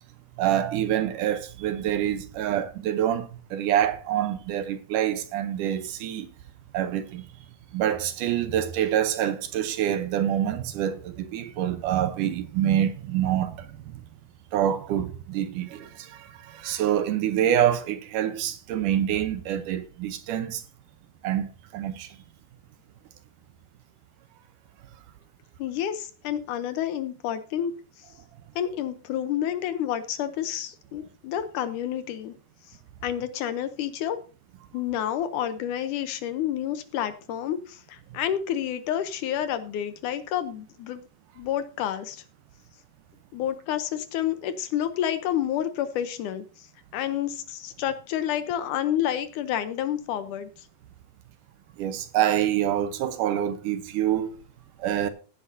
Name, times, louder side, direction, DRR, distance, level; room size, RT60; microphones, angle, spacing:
voice 1, 0.4-6.3 6.7-7.3 7.7-14.0 14.5-20.6 21.2-22.1 51.8-54.4 54.8-55.1, right 11 dB, 75° right, 2.3 m, -26 dB
voice 2, 25.6-27.7 28.6-32.4 33.0-34.2 34.7-41.0 41.4-42.2 43.3-46.7 46.9-50.7, left 10 dB, 75° left, 2.2 m, -29 dB
16.0 x 9.6 x 2.7 m
omnidirectional pair, 3.9 m